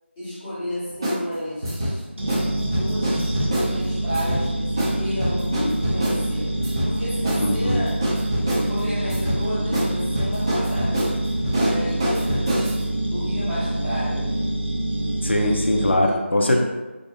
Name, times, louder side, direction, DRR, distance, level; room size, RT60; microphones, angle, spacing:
voice 1, 0.2-2.1 2.8-3.3 3.7-6.5 6.8-8.0 8.7-11.2 11.5-12.5 13.1-14.3 16.0-16.6, left 1 dB, 10° left, -15 dB, 0.7 m, -31 dB
sound 1, 1.0-1.2 1.6-1.9 2.3-2.4 2.7-3.7 4.1-4.4 4.8-4.9 5.2-6.2 6.6-6.9 7.2-7.4 7.7-8.7 9.1-9.4 9.7-9.9 10.1-12.8, equal, 20° right, 0.4 m, -25 dB
sound 2, 2.2-15.9, right 1 dB, 60° right, 0.8 m, -26 dB
voice 2, 7.4-7.8 15.2-16.6, left 1 dB, 60° left, 1 dB, 0.5 m, -21 dB
2.6 x 2.1 x 2.6 m, 1.2 s
figure-of-eight pair, 165°, 7 cm